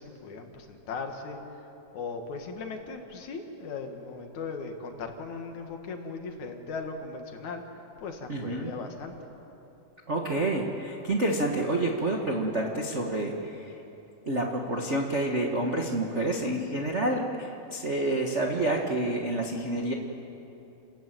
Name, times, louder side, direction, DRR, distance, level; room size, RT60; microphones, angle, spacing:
voice 1, 0.0-1.4 1.9-7.6 8.0-9.1, left 4 dB, 65° left, 4 dB, 3.0 m, -38 dB
voice 2, 8.3-8.7 10.1-13.8 14.2-19.9, right 1 dB, 45° right, 1 dB, 0.9 m, -28 dB
29.5 x 14.0 x 9.2 m, 3.0 s
omnidirectional pair, 3.8 m